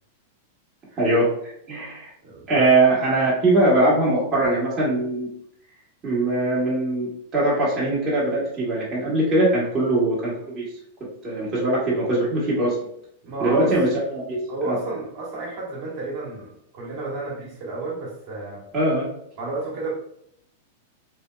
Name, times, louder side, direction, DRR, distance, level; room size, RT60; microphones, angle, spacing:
voice 1, 1.0-1.3 1.7-2.1 2.5-5.3 6.0-10.6 11.2-12.7 13.4-14.4 14.6-14.8 18.7-19.0, right 2 dB, 25° right, -7 dB, 1.3 m, -21 dB
voice 2, 2.2-2.7 13.2-13.8 14.5-18.6 19.4-19.9, right 3 dB, 50° right, -4 dB, 1.4 m, -31 dB
3.2 x 2.7 x 2.3 m, 0.71 s
hypercardioid pair, 125°, 0 cm